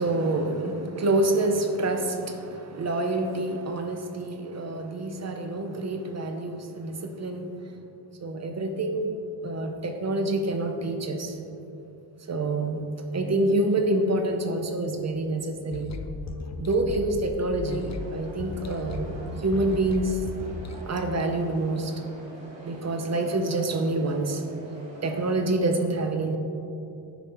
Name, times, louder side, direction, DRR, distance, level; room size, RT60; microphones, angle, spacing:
voice 1, 0.0-7.7 8.2-9.1 9.4-11.4 12.3-12.8 13.1-15.9 16.6-20.2 20.9-22.0 22.6-24.4 25.0-26.4, right 2 dB, 35° right, 5 dB, 0.7 m, -27 dB
sound 1, 15.7-20.8, left 4 dB, 40° left, 0.4 m, -37 dB
sound 2, 17.6-25.3, right 1 dB, 80° right, 1.7 m, -45 dB
9.9 x 5.5 x 4.3 m, 2.8 s
wide cardioid pair, 155°, 45 cm